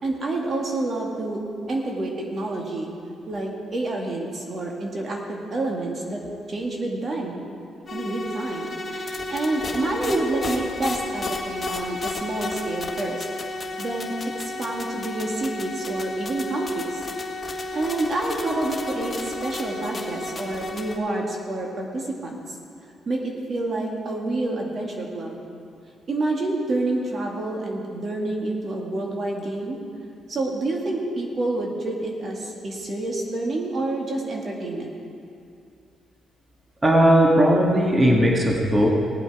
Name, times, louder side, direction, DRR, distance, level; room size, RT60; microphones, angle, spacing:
voice 1, 0.0-1.4 1.7-2.9 3.3-6.2 6.5-7.4 7.9-13.2 13.8-17.0 17.7-22.6 23.1-25.4 26.1-29.8 30.3-34.9, right 2 dB, 45° right, 0 dB, 1.9 m, -28 dB
sound 1, 7.9-21.0, left 2 dB, 25° left, 1.7 m, -32 dB
voice 2, 36.8-38.9, equal, 20° right, -1 dB, 1.8 m, -17 dB
18.0 x 8.2 x 4.8 m, 2.5 s
cardioid pair, 90°, 0 cm